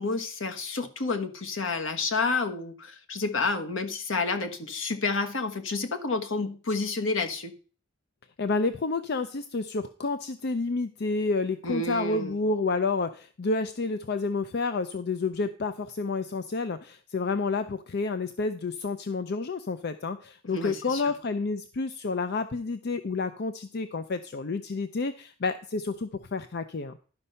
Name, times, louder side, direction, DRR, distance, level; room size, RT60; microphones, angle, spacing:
voice 1, 0.0-7.5 11.6-12.4 20.5-21.1, left 3 dB, 75° left, 6 dB, 1.3 m, -30 dB
voice 2, 8.4-27.0, left 3 dB, 55° left, 10 dB, 0.5 m, -30 dB
11.5 x 5.3 x 5.5 m, 0.40 s
head